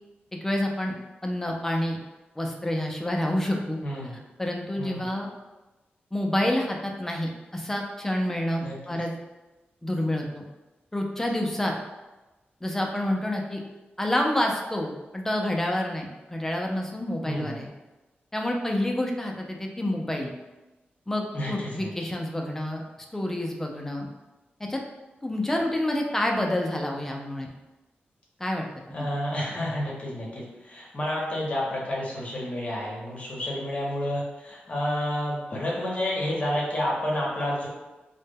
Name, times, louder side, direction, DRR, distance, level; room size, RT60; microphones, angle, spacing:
voice 1, 0.3-0.9 1.2-2.0 2.4-3.8 4.4-5.3 6.1-9.1 9.8-10.4 10.9-11.7 12.6-13.6 14.0-17.7 18.3-20.3 21.1-22.8 23.1-24.1 24.7-24.8 25.2-27.5 28.4-29.1, left 1 dB, 10° left, 1 dB, 0.3 m, -28 dB
voice 2, 3.8-4.2 4.8-5.1 8.6-9.0 17.2-17.6 21.3-21.9 28.9-37.7, left 1 dB, 35° left, -4 dB, 0.6 m, -30 dB
2.1 x 2.1 x 3.3 m, 1.1 s
wide cardioid pair, 165°, 4 cm